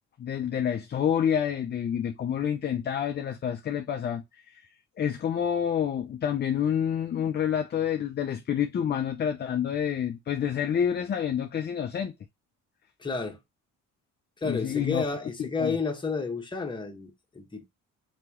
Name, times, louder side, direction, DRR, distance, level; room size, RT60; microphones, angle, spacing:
voice 1, 0.2-4.6 5.0-12.1 14.4-15.0 15.4-15.7, left 8 dB, 35° left, 0.5 m, -28 dB
voice 2, 13.0-13.4 14.4-17.6, left 4 dB, 15° left, 1.1 m, -31 dB
3.9 x 3.0 x 3.5 m
cardioid pair, 95°, 31 cm